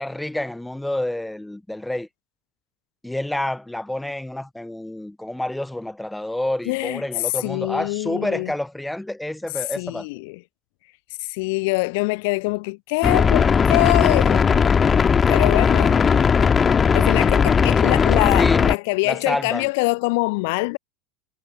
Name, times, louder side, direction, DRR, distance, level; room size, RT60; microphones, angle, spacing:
voice 1, 0.0-2.1 3.0-10.1 18.3-18.6 19.0-19.7, left 1 dB, 5° left, 0.9 m, -28 dB
voice 2, 6.7-7.0 7.4-8.5 9.8-10.4 11.2-14.5 15.3-16.0 16.9-20.8, left 27 dB, 60° left, 0.9 m, -24 dB
sound 1, 13.0-18.8, left 6 dB, 25° left, 1.1 m, -17 dB
hypercardioid pair, 85°, 0 cm